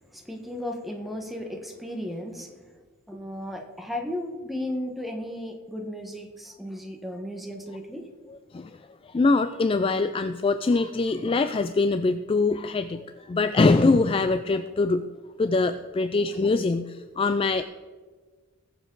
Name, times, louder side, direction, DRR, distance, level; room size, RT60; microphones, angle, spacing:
voice 1, 0.1-2.6 3.1-8.0 16.3-16.4, left 1 dB, ahead, 2 dB, 1.3 m, -35 dB
voice 2, 8.3-8.8 9.0-15.1 15.4-17.6, left 3 dB, 25° left, 10 dB, 0.3 m, -23 dB
20.0 x 7.1 x 3.9 m, 1.4 s
head